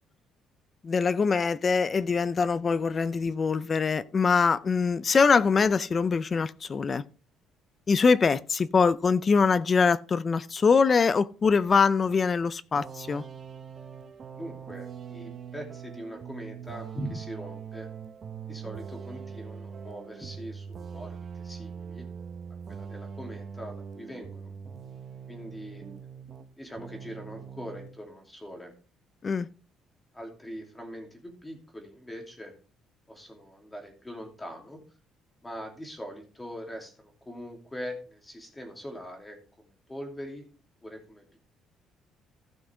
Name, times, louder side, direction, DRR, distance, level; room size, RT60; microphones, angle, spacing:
voice 1, 0.8-7.0 7.9-13.2 29.2-29.5, left 5 dB, 25° left, 0.5 m, -23 dB
sound 1, 12.8-26.5 26.8-28.0, right 7 dB, 35° right, 0.9 m, -42 dB
voice 2, 14.4-17.9 18.5-22.1 22.7-24.5 25.3-25.8 26.6-28.7 30.1-32.5 33.1-34.8 35.4-40.4 40.8-41.2, equal, 10° left, 2.7 m, -42 dB
15.5 x 6.2 x 3.4 m
cardioid pair, 155°, 0 cm